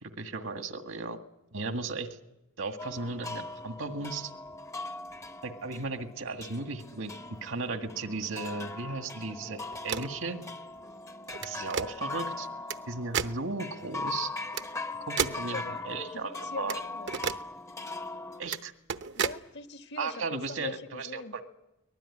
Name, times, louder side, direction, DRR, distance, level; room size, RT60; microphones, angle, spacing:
voice 1, 0.0-1.2 1.5-2.1 2.6-4.3 5.4-7.1 7.4-10.4 11.4-12.5 12.9-14.3 15.1-16.8 18.4-18.7 20.0-21.4, right 3 dB, 80° right, 7 dB, 2.0 m, -35 dB
sound 1, 2.8-18.4, left 3 dB, 15° left, 0.8 m, -40 dB
sound 2, 9.7-10.2 11.3-11.9 12.7-12.8 13.1-13.4 14.5-14.6 15.2-15.4 16.7-16.8 17.1-17.4 18.4-18.6 18.9-19.4, right 7 dB, 60° right, 0.9 m, -32 dB
voice 2, 15.3-15.8 16.1-17.1 19.1-21.4, left 3 dB, 60° left, 7 dB, 1.6 m, -42 dB
23.5 x 20.0 x 9.8 m, 0.92 s
head